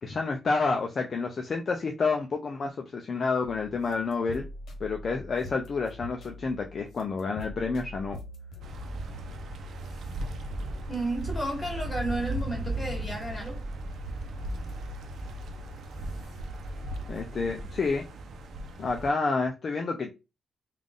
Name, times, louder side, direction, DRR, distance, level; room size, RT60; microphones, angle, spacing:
voice 1, 0.0-4.4 4.8-8.2 17.1-18.0 18.8-20.1, left 4 dB, 40° left, 0.5 m, -29 dB
sound 1, 3.4-17.7, left 1 dB, 70° left, 1.0 m, -44 dB
sound 2, 8.6-19.1, right 1 dB, 70° right, 0.7 m, -37 dB
voice 2, 10.9-13.6, right 1 dB, 20° left, 1.8 m, -32 dB
3.6 x 2.5 x 3.7 m
cardioid pair, 125°, 0 cm